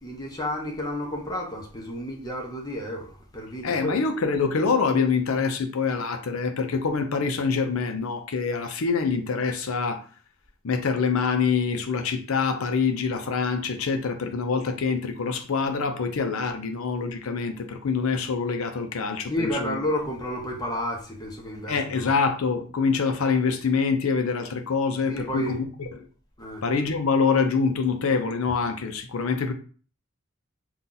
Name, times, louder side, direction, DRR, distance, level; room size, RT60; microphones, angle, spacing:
voice 1, 0.0-4.0 19.3-22.1 25.1-25.6 26.4-26.6, left 1 dB, 20° left, 0.7 m, -31 dB
voice 2, 3.6-10.1 10.6-19.8 21.7-25.9 26.6-29.5, left 5 dB, 75° left, 0.5 m, -25 dB
2.7 x 2.3 x 3.8 m
head